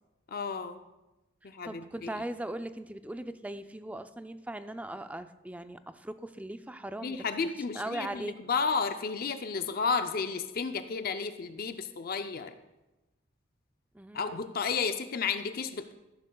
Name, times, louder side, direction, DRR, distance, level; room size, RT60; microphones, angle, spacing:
voice 1, 0.3-0.8 1.4-2.1 7.0-12.5 14.1-15.9, left 5 dB, 50° left, 8 dB, 0.5 m, -32 dB
voice 2, 1.4-7.2 7.7-8.4 13.9-14.5, right 1 dB, 10° right, 10 dB, 0.4 m, -39 dB
13.5 x 11.5 x 2.3 m, 1.0 s
head